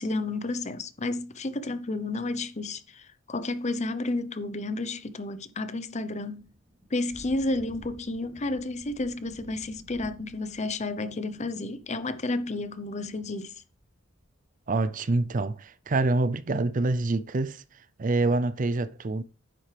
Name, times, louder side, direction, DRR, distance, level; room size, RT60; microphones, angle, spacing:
voice 1, 0.0-6.5 6.9-13.6, left 2 dB, 35° left, 0.8 m, -31 dB
Thunder / Rain, 6.3-15.7, equal, 20° right, 3.5 m, -53 dB
voice 2, 14.7-17.6 18.0-19.2, right 2 dB, 40° right, 0.5 m, -26 dB
10.0 x 7.8 x 3.4 m
head